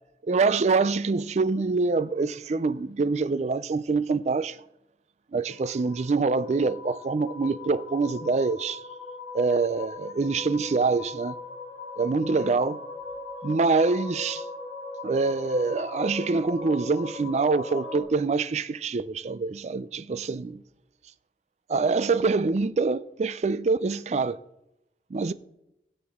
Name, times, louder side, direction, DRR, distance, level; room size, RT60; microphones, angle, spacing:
voice 1, 0.2-4.6 5.3-8.8 9.3-11.4 12.0-12.8 13.4-14.4 15.0-20.6 21.7-24.4 25.1-25.3, right 4 dB, 40° right, 0.3 m, -25 dB
sound 1, 5.5-18.0, left 3 dB, 15° left, 4.0 m, -39 dB
16.5 x 7.9 x 3.6 m
head